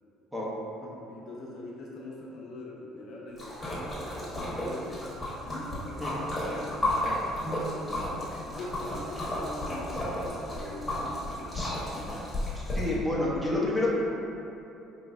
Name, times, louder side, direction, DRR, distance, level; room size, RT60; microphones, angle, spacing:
voice 1, 1.1-5.0 5.4-6.7 7.4-11.9, left 2 dB, 60° left, -3 dB, 0.7 m, -43 dB
Splash splatter, 3.4-12.9, left 1 dB, 15° left, 1.1 m, -33 dB
voice 2, 11.5-12.0 12.5-13.9, left 2 dB, 10° right, -5 dB, 0.7 m, -30 dB
4.8 x 3.0 x 2.5 m, 2.9 s
cardioid pair, 110°, 0 cm